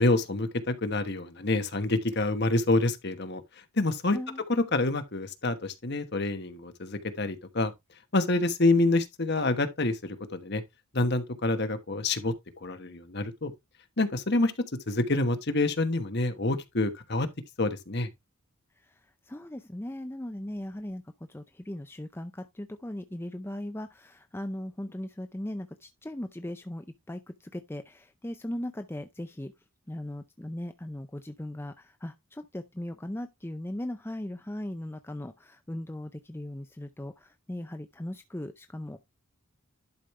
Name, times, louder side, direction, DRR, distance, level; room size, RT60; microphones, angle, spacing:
voice 1, 0.0-3.4 3.7-4.2 4.5-7.7 8.1-10.6 10.9-12.3 12.6-13.5 14.0-14.5 14.9-17.3 17.6-18.1, left 2 dB, 50° left, 1.3 m, -27 dB
voice 2, 4.1-4.4 18.8-21.0 21.3-29.5 29.9-39.0, left 1 dB, 10° left, 0.5 m, -38 dB
11.5 x 5.1 x 3.2 m
head